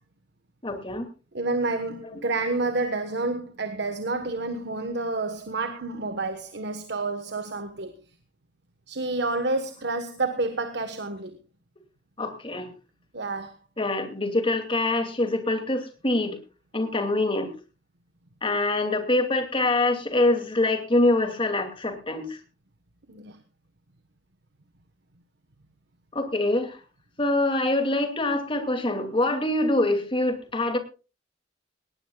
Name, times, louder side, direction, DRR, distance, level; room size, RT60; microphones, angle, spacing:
voice 1, 0.6-1.1 2.1-2.3 12.2-12.7 13.8-16.4 16.7-17.5 18.4-22.4 26.1-26.8 27.2-30.8, left 2 dB, 30° left, 6 dB, 2.6 m, -25 dB
voice 2, 1.3-7.9 8.9-11.4 13.1-13.6 23.1-23.4, right 2 dB, 60° right, 8 dB, 1.3 m, -29 dB
18.5 x 18.5 x 2.4 m, 0.32 s
head